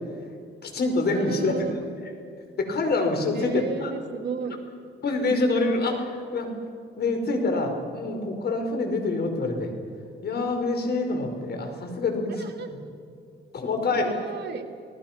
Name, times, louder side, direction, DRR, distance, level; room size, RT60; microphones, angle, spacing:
voice 1, 0.6-1.6 2.6-3.9 5.0-6.5 7.0-9.7 10.2-12.4 13.5-14.1, left 3 dB, 55° left, 5 dB, 5.1 m, -26 dB
voice 2, 1.1-1.7 3.3-4.6 12.3-12.7 13.9-14.7, right 5 dB, 55° right, 2 dB, 3.0 m, -34 dB
30.0 x 19.0 x 6.1 m, 2.3 s
cardioid pair, 90°, 20 cm